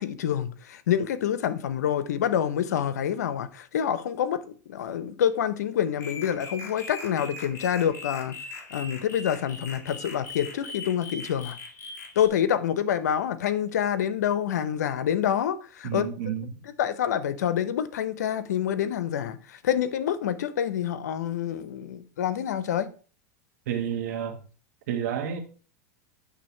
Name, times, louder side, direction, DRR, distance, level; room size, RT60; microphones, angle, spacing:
voice 1, 0.0-8.4 8.7-11.6 12.2-16.1 16.8-22.9, left 9 dB, 85° left, 0.7 m, -27 dB
sound 1, 6.0-12.3, left 3 dB, 30° left, 1.8 m, -40 dB
voice 2, 15.8-16.6 23.7-24.4 24.9-25.4, right 9 dB, 70° right, 1.5 m, -30 dB
8.5 x 3.4 x 4.4 m
supercardioid pair, 125°, 9 cm